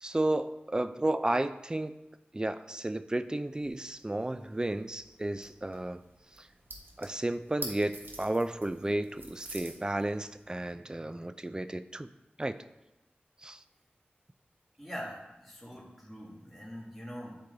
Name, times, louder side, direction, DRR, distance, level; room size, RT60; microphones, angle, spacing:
voice 1, 0.0-1.9 2.3-6.0 6.4-6.5 7.0-12.1 12.4-12.6 13.4-13.6, right 1 dB, 20° right, 12 dB, 0.4 m, -32 dB
sound 1, 3.5-10.7, right 2 dB, 70° right, 1.2 m, -48 dB
voice 2, 14.8-17.4, equal, ahead, -5 dB, 1.9 m, -43 dB
8.7 x 4.5 x 3.8 m, 1.0 s
wide cardioid pair, 55°, 4 cm